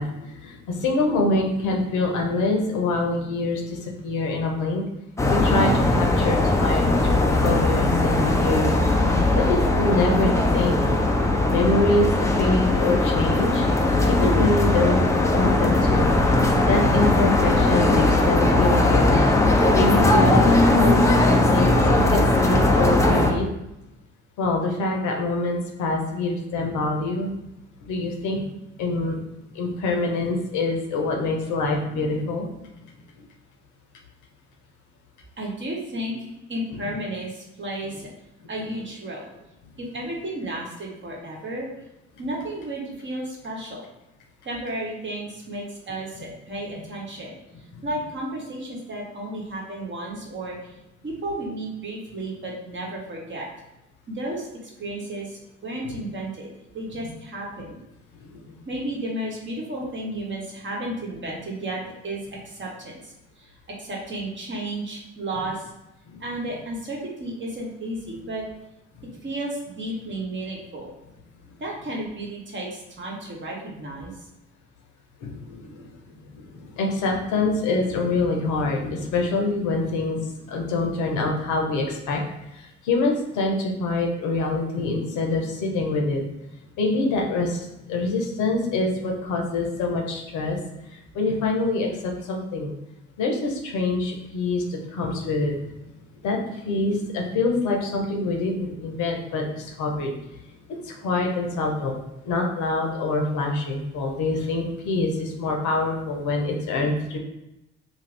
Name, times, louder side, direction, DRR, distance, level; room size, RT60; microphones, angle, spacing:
voice 1, 0.0-3.8 4.0-4.8 5.3-8.7 9.4-10.9 11.5-12.1 12.4-13.7 14.1-16.1 16.6-19.3 19.7-21.0 21.2-23.5 24.4-27.3 27.9-28.4 28.8-29.2 29.5-32.5 36.8-36.9 46.2-46.3 58.3-58.4 66.1-66.2 75.2-75.8 76.8-82.2 82.8-86.2 86.8-90.6 91.1-91.9 92.3-92.7 93.2-95.5 96.2-96.4 96.6-100.1 100.8-102.0 102.3-107.2, left 2 dB, 55° left, 1 dB, 0.8 m, -25 dB
sound 1, 5.2-23.3, left 2 dB, 10° left, 0.4 m, -19 dB
voice 2, 35.4-38.0 38.5-39.3 39.8-41.7 42.2-43.9 44.4-47.3 47.8-50.7 51.0-53.5 54.1-57.8 58.7-65.7 66.2-68.4 69.2-70.9 71.6-74.1, right 1 dB, 35° right, -3 dB, 1.1 m, -33 dB
2.6 x 2.5 x 3.3 m, 0.91 s
figure-of-eight pair, 50°, 35 cm